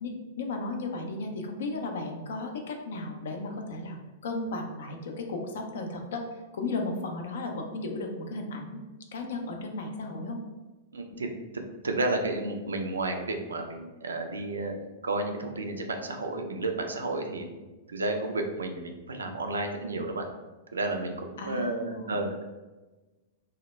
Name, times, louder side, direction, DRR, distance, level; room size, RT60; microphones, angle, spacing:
voice 1, 0.0-4.0 4.2-6.2 6.5-8.8 9.1-10.4 11.1-11.2 21.4-22.3, left 2 dB, 65° left, 3 dB, 0.4 m, -35 dB
voice 2, 10.9-14.7 15.0-17.5 17.9-20.2 20.7-22.5, right 2 dB, 75° right, 4 dB, 0.3 m, -32 dB
2.1 x 2.0 x 3.0 m, 1.2 s
figure-of-eight pair, 100°, 0 cm